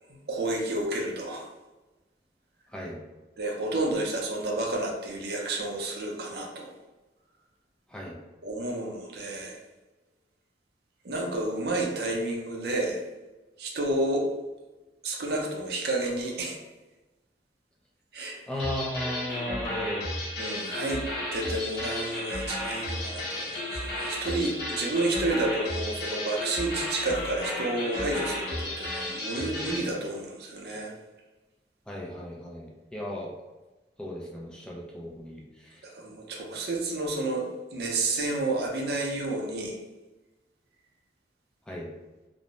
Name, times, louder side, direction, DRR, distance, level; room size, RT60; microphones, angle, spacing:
voice 1, 0.3-1.5 3.4-6.7 8.4-9.6 11.0-13.0 13.6-14.3 15.0-16.6 18.1-18.4 20.4-21.0 21.3-30.9 35.8-39.8, right 2 dB, 65° right, 0 dB, 0.5 m, -30 dB
voice 2, 18.5-20.1 31.9-33.3 34.0-35.8 41.7-41.9, left 1 dB, 5° left, -4 dB, 0.3 m, -36 dB
sound 1, 18.6-29.9, left 1 dB, 65° left, 0.8 m, -33 dB
2.5 x 2.0 x 2.9 m, 1.1 s
head